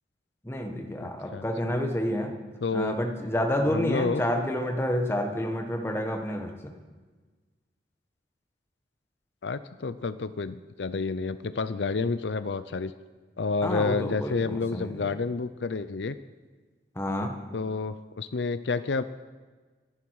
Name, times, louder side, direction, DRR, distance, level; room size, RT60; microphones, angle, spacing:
voice 1, 0.4-2.3 2.7-6.7 13.6-15.0 16.9-17.4, equal, 15° left, 4 dB, 1.4 m, -29 dB
voice 2, 1.0-1.4 2.6-3.0 3.7-4.2 9.4-12.9 13.4-16.2 17.5-19.0, left 4 dB, 80° left, 14 dB, 0.6 m, -29 dB
26.0 x 11.0 x 4.8 m, 1.4 s
head